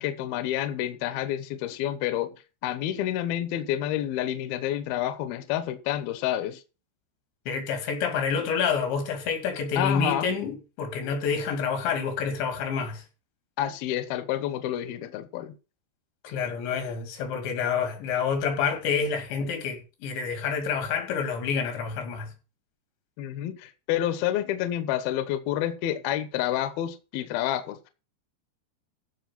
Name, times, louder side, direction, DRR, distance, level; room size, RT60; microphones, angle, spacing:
voice 1, 0.0-2.3 2.6-6.6 9.8-10.3 13.6-15.5 23.2-27.8, left 12 dB, 70° left, 2.6 m, -29 dB
voice 2, 7.5-13.0 16.2-22.3, left 6 dB, 90° left, 5.0 m, -28 dB
14.5 x 5.8 x 5.9 m
omnidirectional pair, 5.0 m